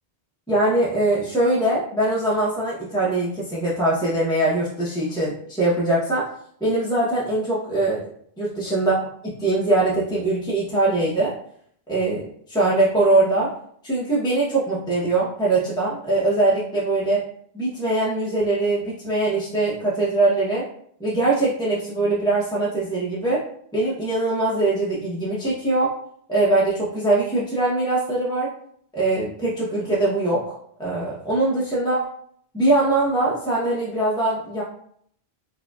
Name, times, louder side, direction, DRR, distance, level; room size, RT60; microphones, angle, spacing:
voice 1, 0.5-6.2 6.6-8.0 8.4-8.9 9.4-11.3 11.9-12.2 12.5-13.5 13.8-17.2 17.5-20.6 21.0-23.4 23.7-25.9 26.3-28.5 28.9-30.5 30.8-32.0 32.5-34.6, right 2 dB, 5° left, -8 dB, 0.7 m, -22 dB
4.7 x 2.7 x 2.3 m, 0.64 s
omnidirectional pair, 1.0 m